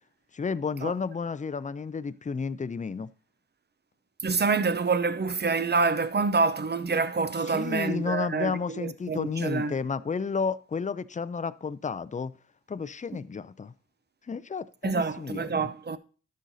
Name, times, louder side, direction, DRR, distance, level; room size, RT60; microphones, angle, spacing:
voice 1, 0.3-3.1 7.5-12.3 12.7-13.7 14.3-15.7, left 5 dB, 25° left, 0.4 m, -32 dB
voice 2, 4.2-9.7 14.8-16.0, right 4 dB, 35° right, 0.6 m, -27 dB
12.0 x 6.4 x 2.7 m
cardioid pair, 50°, 31 cm